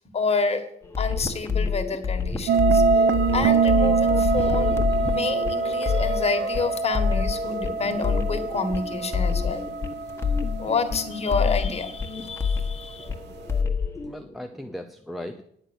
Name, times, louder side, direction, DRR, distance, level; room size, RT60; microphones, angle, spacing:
voice 1, 0.1-0.6 1.0-3.0 3.3-9.7 10.6-13.1, left 4 dB, 35° left, 7 dB, 1.7 m, -28 dB
sound 1, 0.8-14.1, left 5 dB, 15° left, 1.5 m, -27 dB
sound 2, 2.5-11.8, right 5 dB, 70° right, 0.7 m, -24 dB
voice 2, 13.2-13.7 14.0-15.4, left 1 dB, ahead, 5 dB, 0.7 m, -39 dB
10.0 x 7.4 x 6.5 m, 0.70 s
cardioid pair, 85°, 18 cm